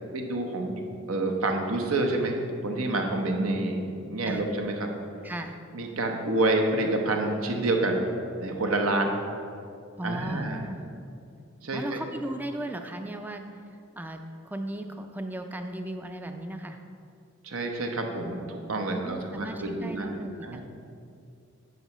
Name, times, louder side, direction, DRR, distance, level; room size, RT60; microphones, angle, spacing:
voice 1, 0.1-3.8 4.1-4.9 5.7-8.1 8.4-9.2 10.0-10.6 11.6-12.0 17.4-20.1 20.4-20.6, right 2 dB, 85° right, 3 dB, 0.9 m, -28 dB
voice 2, 5.2-5.6 10.0-10.8 11.7-13.4 14.0-16.8 19.0-20.6, right 1 dB, 10° right, 6 dB, 0.3 m, -36 dB
9.1 x 6.6 x 3.1 m, 2.4 s
head